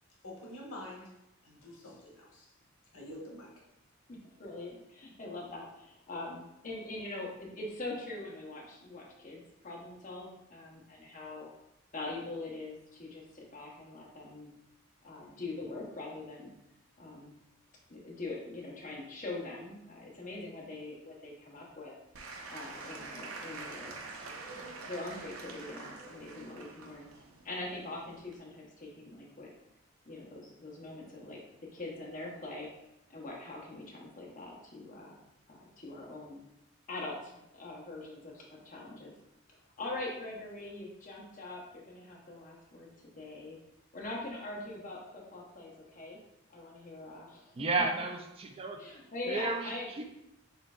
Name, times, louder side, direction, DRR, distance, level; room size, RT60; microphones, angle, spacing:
voice 1, 0.2-1.2 1.4-2.5 2.9-3.5, left 1 dB, 85° left, -2 dB, 1.2 m, -47 dB
voice 2, 4.1-11.5 11.9-14.5 15.0-16.5 17.0-17.4 17.9-21.9 22.5-23.9 24.3-27.1 27.4-29.5 30.1-32.7 33.1-35.2 35.5-36.4 36.9-39.1 39.8-43.6 43.9-46.2 46.5-47.6 48.8-49.9, left 2 dB, 40° left, -2 dB, 0.9 m, -43 dB
Applause / Crowd, 22.1-28.4, right 3 dB, 90° right, 0.6 m, -45 dB
voice 3, 47.6-48.8 49.3-50.0, right 3 dB, 30° right, 4 dB, 0.3 m, -33 dB
4.4 x 3.8 x 2.4 m, 0.83 s
head